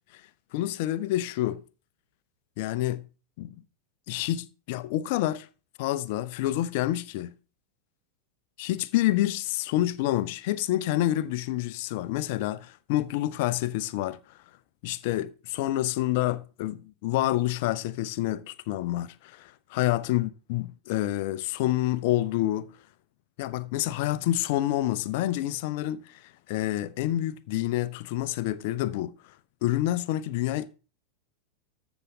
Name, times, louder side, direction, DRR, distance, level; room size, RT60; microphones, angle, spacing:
voice 1, 0.5-1.6 2.6-3.1 3.4-3.5 4.1-5.5 5.8-7.3 8.6-14.2 14.8-22.7 23.4-26.2 26.5-29.2 29.6-30.7, left 14 dB, 50° left, 0.6 m, -28 dB
13.5 x 7.2 x 3.8 m
figure-of-eight pair, 90°, 0 cm